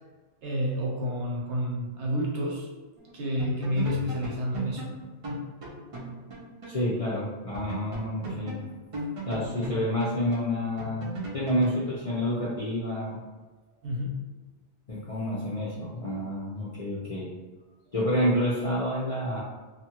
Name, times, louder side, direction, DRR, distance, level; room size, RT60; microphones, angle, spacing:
voice 1, 0.4-2.7 3.1-4.9 5.2-5.4 13.8-14.2, equal, 75° right, -2 dB, 1.0 m, -30 dB
sound 1, 3.0-3.1 3.4-6.8 7.1-7.2 7.5-11.8, right 1 dB, 40° right, 0.5 m, -37 dB
voice 2, 6.7-8.6 9.3-13.2 14.9-17.3 17.9-19.4, equal, 45° left, -7 dB, 0.5 m, -29 dB
2.7 x 2.3 x 2.8 m, 1.3 s
omnidirectional pair, 1.2 m